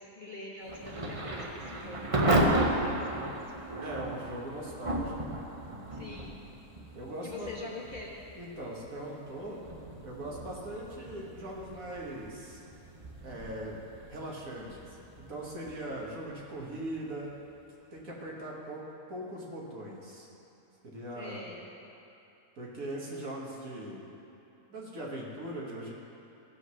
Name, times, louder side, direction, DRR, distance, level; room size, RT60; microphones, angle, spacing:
voice 1, 0.0-3.4 5.9-6.4 7.2-8.2 21.1-21.7, left 2 dB, 35° left, -4 dB, 1.1 m, -44 dB
Thunder / Rain, 0.7-17.4, right 1 dB, 30° right, 0.6 m, -35 dB
voice 2, 3.8-5.3 6.9-7.7 8.4-9.6 10.0-12.6 13.2-13.8 14.1-17.3 17.9-18.8 19.1-20.3 20.8-21.4 22.6-24.1 24.7-25.9, right 1 dB, 60° right, -3 dB, 2.0 m, -40 dB
15.5 x 5.2 x 6.2 m, 2.9 s
omnidirectional pair, 1.6 m